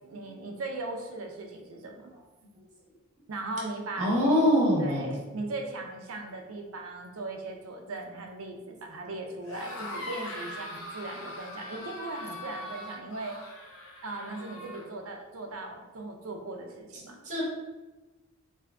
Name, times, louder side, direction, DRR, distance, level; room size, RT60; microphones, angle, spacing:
voice 1, 0.0-2.1 3.3-4.3 4.8-13.6 14.0-17.2, right 2 dB, 65° right, 3 dB, 0.5 m, -38 dB
voice 2, 4.0-5.2 9.7-9.8 17.2-17.4, equal, 35° right, -5 dB, 0.8 m, -24 dB
sound 1, 9.4-14.8, left 1 dB, 60° left, 0.5 m, -41 dB
2.6 x 2.3 x 3.4 m, 1.2 s
head